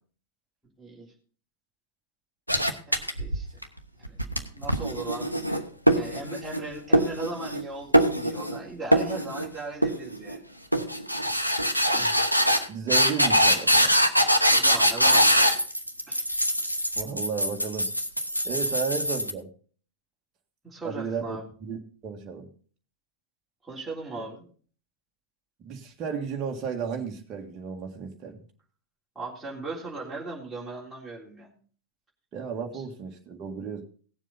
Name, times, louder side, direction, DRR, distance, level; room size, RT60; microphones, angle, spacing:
voice 1, 0.8-1.1 2.9-3.6 4.1-4.2 4.5-5.7 5.9-10.4 14.5-15.5 16.1-16.2 20.6-21.4 23.6-24.4 29.2-31.5 32.7-32.8, right 3 dB, 5° right, -5 dB, 3.6 m, -38 dB
sound 1, 2.5-3.6 4.0-6.6 6.9-7.6 7.9-8.6 8.9-9.5 9.8-10.4 10.7-19.3, equal, 90° right, 1.0 m, -23 dB
voice 2, 12.7-14.0 17.0-17.9 18.4-19.5 20.8-21.8 22.0-22.5 25.6-28.4 32.3-33.8, right 6 dB, 30° right, 1 dB, 1.8 m, -33 dB
17.5 x 7.3 x 4.1 m, 0.42 s
figure-of-eight pair, 90°, 0 cm